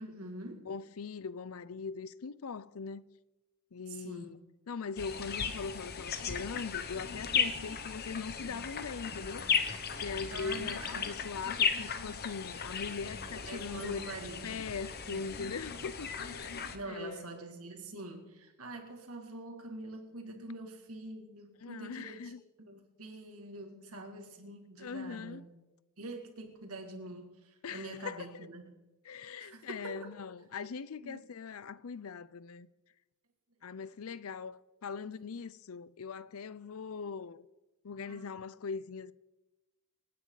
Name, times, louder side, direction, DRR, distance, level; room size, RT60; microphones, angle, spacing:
voice 1, 0.0-0.7 3.9-4.4 10.3-11.1 13.5-14.6 15.1-15.3 16.0-16.1 16.7-22.3 22.6-25.6 26.0-28.7 29.4-30.1 31.0-31.2 38.1-38.4, right 2 dB, 80° right, 2.3 m, -45 dB
voice 2, 0.6-3.1 3.7-4.4 4.7-9.5 10.0-14.0 14.4-17.3 21.6-22.4 24.8-25.4 27.6-28.5 29.1-32.7 33.6-37.5 37.8-39.1, left 5 dB, 75° left, 0.5 m, -41 dB
sound 1, 5.0-16.8, left 6 dB, 45° left, 1.1 m, -36 dB
26.0 x 9.6 x 4.0 m
head